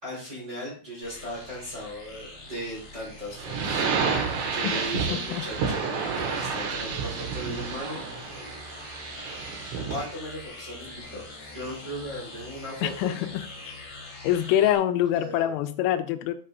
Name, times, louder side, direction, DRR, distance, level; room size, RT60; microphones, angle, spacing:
voice 1, 0.0-4.2 4.5-8.1 9.9-13.3 15.1-15.5, equal, 15° right, -5 dB, 3.4 m, -37 dB
sound 1, 1.0-14.8, left 2 dB, 55° left, 5.1 m, -44 dB
sound 2, 3.4-10.1, right 5 dB, 80° right, 4.2 m, -30 dB
voice 2, 12.8-13.7 14.2-16.4, left 11 dB, 90° left, 10 dB, 3.3 m, -25 dB
8.9 x 8.6 x 2.5 m, 0.40 s
omnidirectional pair, 5.9 m